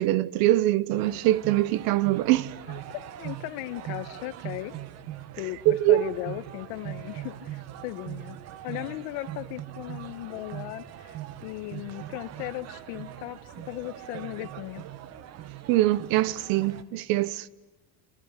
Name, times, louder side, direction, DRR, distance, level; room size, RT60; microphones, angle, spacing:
voice 1, 0.0-2.5 5.7-6.1 15.7-17.5, right 15 dB, 60° right, 1.0 m, -23 dB
sound 1, 0.9-16.8, right 12 dB, 40° right, 1.6 m, -41 dB
voice 2, 2.7-4.7 5.4-5.6 5.9-8.4 8.6-13.4 13.7-14.8, left 17 dB, 75° left, 1.5 m, -37 dB
28.5 x 25.5 x 8.2 m
cardioid pair, 175°, 39 cm